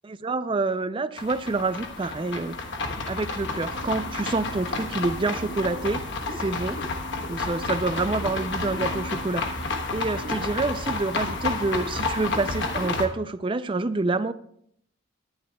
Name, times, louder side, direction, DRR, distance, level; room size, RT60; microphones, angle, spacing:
voice 1, 0.1-2.6 3.1-6.0 6.4-6.8 7.3-9.4 9.9-14.3, right 3 dB, 25° right, 14 dB, 0.4 m, -27 dB
sound 1, 1.2-13.1, left 3 dB, 55° left, 1.1 m, -30 dB
19.0 x 10.5 x 2.3 m, 0.69 s
head